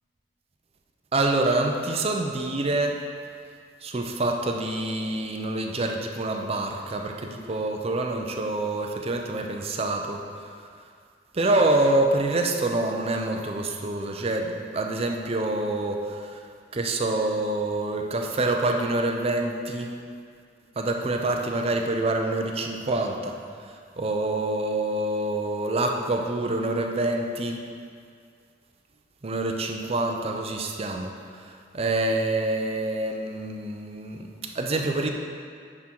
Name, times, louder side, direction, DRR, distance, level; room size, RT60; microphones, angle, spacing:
voice 1, 1.1-3.0 3.8-10.5 11.3-16.4 16.7-19.9 20.8-23.4 24.0-27.6 29.2-31.1 31.4-35.1, right 2 dB, 35° right, 3 dB, 0.6 m, -26 dB
9.7 x 3.7 x 4.5 m, 2.2 s
head